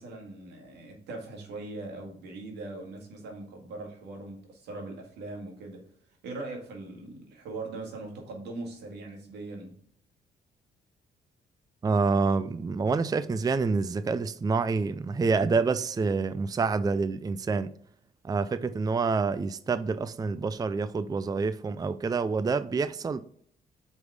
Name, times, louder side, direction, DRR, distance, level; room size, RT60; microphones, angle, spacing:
voice 1, 0.0-5.8 6.2-9.8, right 2 dB, 90° right, 2.0 m, -40 dB
voice 2, 11.8-17.7 18.2-23.2, right 4 dB, 20° right, 0.4 m, -27 dB
5.3 x 4.8 x 6.4 m
cardioid pair, 75°, 17 cm